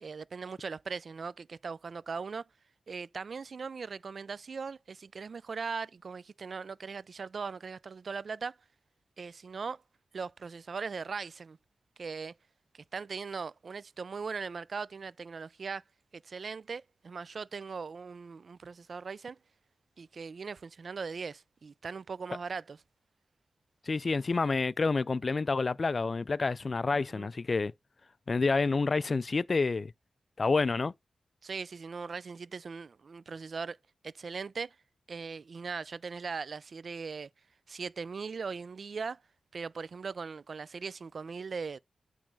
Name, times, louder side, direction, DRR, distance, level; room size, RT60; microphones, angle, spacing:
voice 1, 0.0-2.4 2.9-8.6 9.2-9.8 10.1-11.6 12.0-12.3 12.7-15.8 16.1-19.4 20.0-22.8 26.9-27.3 31.4-33.8 34.0-34.8 35.1-37.3 37.7-39.2 39.5-41.8, right 5 dB, 65° right, 0.3 m, -39 dB
voice 2, 23.9-27.7 28.3-29.9 30.4-30.9, left 4 dB, 50° left, 0.3 m, -28 dB
8.8 x 3.2 x 5.1 m
cardioid pair, 50°, 0 cm